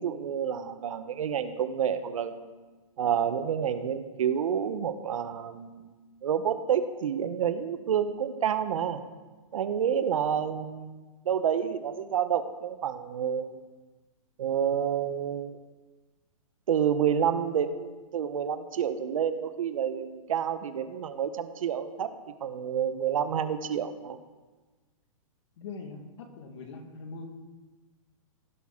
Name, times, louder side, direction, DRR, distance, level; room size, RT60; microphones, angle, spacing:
voice 1, 0.0-2.5 3.0-9.0 9.5-13.6 14.4-15.6 16.7-22.1 22.4-24.2, right 8 dB, 70° right, 11 dB, 0.9 m, -29 dB
voice 2, 25.6-27.3, left 4 dB, 55° left, 4 dB, 1.7 m, -42 dB
16.5 x 5.9 x 3.7 m, 1.3 s
hypercardioid pair, 155°, 18 cm